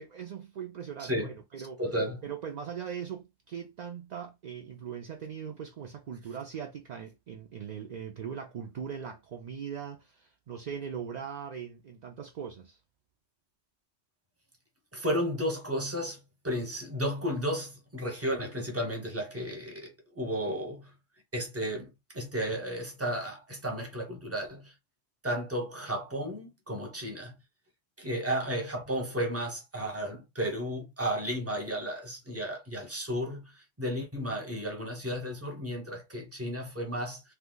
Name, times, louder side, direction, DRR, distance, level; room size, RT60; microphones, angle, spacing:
voice 1, 0.0-1.8 2.2-12.8, right 7 dB, 55° right, 0.5 m, -40 dB
voice 2, 1.8-2.2 14.9-16.2 16.4-20.9 21.3-24.7 25.2-27.4 28.0-33.4 33.8-37.2, equal, 15° right, 0.9 m, -33 dB
2.8 x 2.3 x 3.7 m
omnidirectional pair, 1.2 m